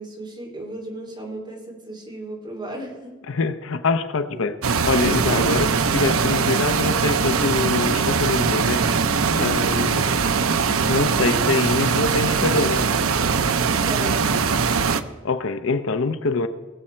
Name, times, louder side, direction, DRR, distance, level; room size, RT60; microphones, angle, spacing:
voice 1, 0.0-3.1 4.3-4.4 5.3-5.5 13.8-14.2, right 1 dB, 20° right, 0 dB, 2.9 m, -34 dB
voice 2, 3.3-4.6 4.8-9.1 9.4-10.1 10.9-12.9 15.2-16.5, left 4 dB, 65° left, 11 dB, 0.7 m, -24 dB
sound 1, 4.6-15.0, right 5 dB, 75° right, 0.7 m, -21 dB
20.5 x 7.6 x 4.5 m, 1.3 s
head